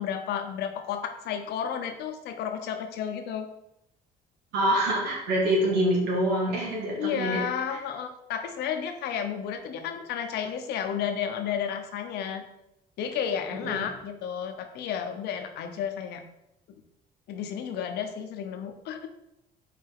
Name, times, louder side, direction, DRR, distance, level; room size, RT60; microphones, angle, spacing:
voice 1, 0.0-3.5 6.9-12.4 13.0-16.2 17.3-19.1, left 8 dB, 80° left, 6 dB, 0.9 m, -32 dB
voice 2, 4.5-7.4 7.7-7.8 13.6-13.9, right 1 dB, 80° right, -3 dB, 2.4 m, -25 dB
5.0 x 4.4 x 4.7 m, 0.83 s
cardioid pair, 110°, 17 cm